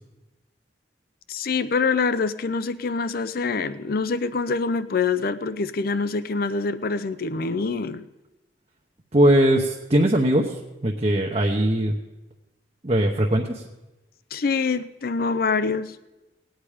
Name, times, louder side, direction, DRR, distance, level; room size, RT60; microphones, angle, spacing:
voice 1, 1.3-8.0 14.3-16.0, left 4 dB, 55° left, 14 dB, 0.5 m, -25 dB
voice 2, 9.1-10.5 10.8-11.9 12.8-13.6, right 1 dB, 35° right, 0 dB, 0.9 m, -20 dB
18.0 x 8.9 x 5.0 m, 1.1 s
head